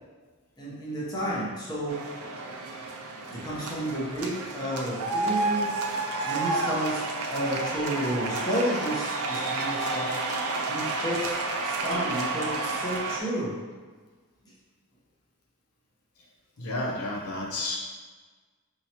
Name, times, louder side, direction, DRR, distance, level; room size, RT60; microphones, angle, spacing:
voice 1, 0.6-2.0 3.3-5.7 6.2-7.0 7.3-10.2 10.6-13.6, right 1 dB, 20° left, -7 dB, 1.0 m, -31 dB
sound 1, 1.9-13.2, right 3 dB, 85° right, 0.5 m, -30 dB
voice 2, 16.6-17.8, left 1 dB, 90° left, -2 dB, 0.8 m, -31 dB
5.2 x 2.9 x 2.9 m, 1.4 s
head